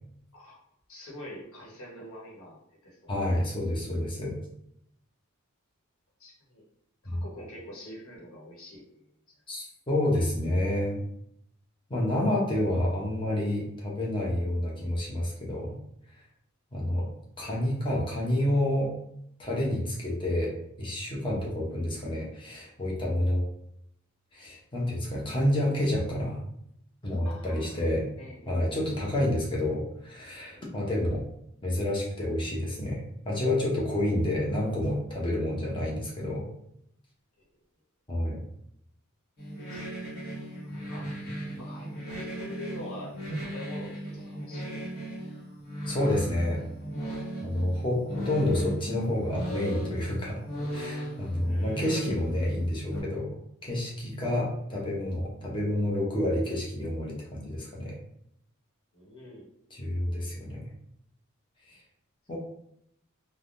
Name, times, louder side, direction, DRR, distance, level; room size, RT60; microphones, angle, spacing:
voice 1, 0.9-3.1 6.2-6.6 7.0-9.1 27.2-27.8 28.2-28.5 34.2-34.3 37.4-37.5 39.7-39.9 40.6-41.1 41.6-44.9 51.4-52.0 58.9-59.5, left 1 dB, 70° left, -4 dB, 1.1 m, -45 dB
voice 2, 3.1-4.4 7.0-7.2 9.5-11.0 11.9-15.8 16.7-17.1 17.4-18.9 19.4-20.5 20.8-23.4 24.3-26.4 27.0-28.1 28.5-31.2 31.6-36.5 38.1-38.4 45.9-46.6 47.4-50.4 50.7-53.3 53.6-58.0 59.7-60.7 61.7-61.8 62.3-62.4, left 1 dB, 25° left, -4 dB, 0.7 m, -29 dB
sound 1, 39.4-53.0, right 1 dB, 50° left, 1.4 m, -37 dB
3.3 x 2.1 x 2.5 m, 0.73 s
head